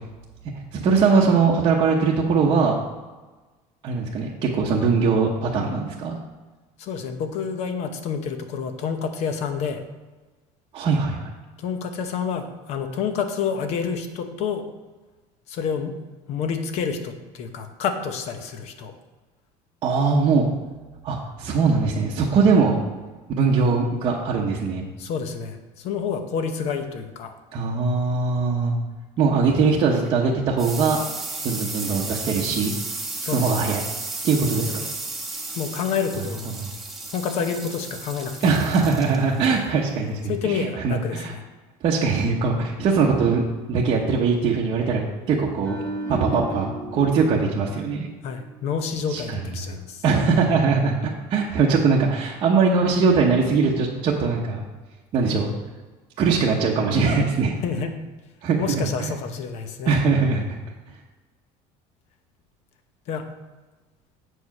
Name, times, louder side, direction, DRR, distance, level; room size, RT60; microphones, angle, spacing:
voice 1, 0.7-2.8 3.8-6.2 10.7-11.3 19.8-20.5 21.0-22.8 23.4-24.9 27.5-28.7 29.2-31.0 31.4-32.7 33.3-33.8 34.2-34.8 36.6-36.7 38.4-41.3 41.8-43.4 43.7-45.8 46.1-48.1 49.1-49.4 49.7-49.8 50.0-54.6 55.1-55.5 56.2-57.5 58.4-59.1 59.8-60.6, right 4 dB, 35° right, -4 dB, 0.9 m, -21 dB
voice 2, 6.8-9.8 11.6-14.7 15.5-15.9 16.3-18.9 25.0-27.3 33.2-33.6 34.7-34.8 35.5-36.5 37.1-38.5 40.3-41.4 48.2-50.0 57.6-57.9 58.6-59.9 63.1-63.3, left 6 dB, 50° left, 7 dB, 0.9 m, -28 dB
sound 1, 30.1-41.1, right 2 dB, ahead, 1.1 m, -34 dB
sound 2, 45.6-48.9 49.2-49.4, right 1 dB, 20° left, 0.9 m, -35 dB
8.1 x 4.7 x 5.9 m, 1.2 s
cardioid pair, 170°, 15 cm